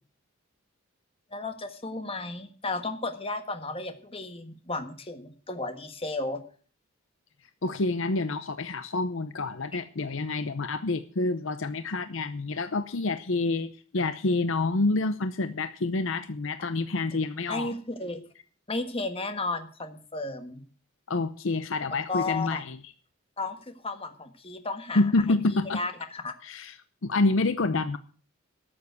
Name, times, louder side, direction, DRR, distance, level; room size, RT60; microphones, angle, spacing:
voice 1, 1.3-6.4 17.5-18.3 18.7-20.6 22.1-22.6 23.4-25.0 25.3-25.4 25.7-26.3, left 3 dB, 25° left, 7 dB, 1.5 m, -34 dB
voice 2, 7.6-17.7 21.1-22.8 24.9-25.8 26.4-26.8 27.0-28.0, left 3 dB, 60° left, 11 dB, 0.7 m, -27 dB
13.5 x 7.4 x 8.0 m, 0.42 s
head